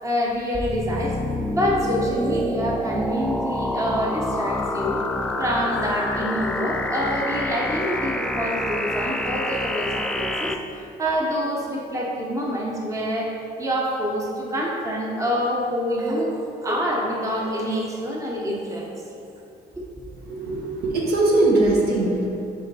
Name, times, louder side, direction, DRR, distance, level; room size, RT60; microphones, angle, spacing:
voice 1, 0.0-1.2 1.5-5.0 5.4-16.3 16.6-18.9 19.8-20.0, equal, 20° right, -2 dB, 0.8 m, -26 dB
sound 1, 0.5-10.5, left 1 dB, 5° left, 0.3 m, -27 dB
voice 2, 20.3-22.3, right 2 dB, 70° right, -3 dB, 1.4 m, -20 dB
5.2 x 5.1 x 4.7 m, 2.8 s
cardioid pair, 110°, 17 cm